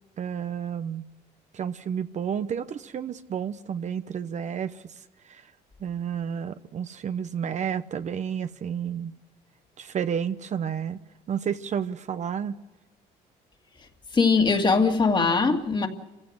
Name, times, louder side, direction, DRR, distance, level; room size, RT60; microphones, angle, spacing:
voice 1, 0.2-1.0 1.5-4.9 5.3-5.4 5.8-9.1 9.8-11.0 11.3-12.5, right 8 dB, 45° right, 0.9 m, -31 dB
voice 2, 14.1-15.9, left 4 dB, 25° left, 2.2 m, -21 dB
28.0 x 16.0 x 6.5 m
cardioid pair, 110°, 17 cm